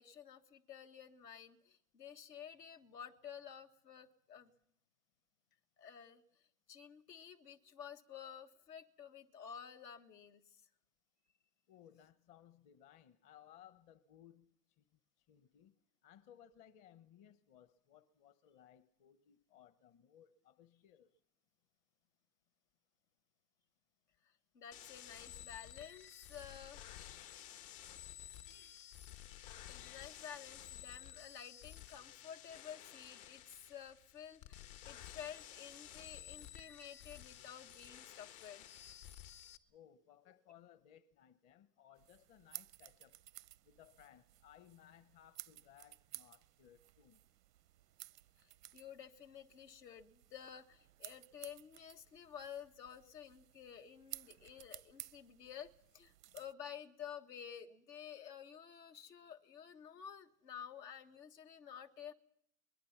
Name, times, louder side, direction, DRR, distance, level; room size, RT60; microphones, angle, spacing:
voice 1, 0.0-4.5 5.8-6.2 6.7-10.6 24.5-26.8 28.4-28.9 29.3-38.7 48.4-62.1, left 8 dB, 85° left, 1.7 m, -52 dB
voice 2, 11.7-14.5 14.8-14.9 15.3-15.7 16.0-21.1 39.7-43.2 43.7-47.2, left 10 dB, 40° left, 1.0 m, -62 dB
sound 1, 24.7-39.6, left 12 dB, 65° left, 1.5 m, -53 dB
sound 2, 42.0-56.5, right 14 dB, 90° right, 0.7 m, -56 dB
23.5 x 21.0 x 5.9 m
hypercardioid pair, 100°, 48 cm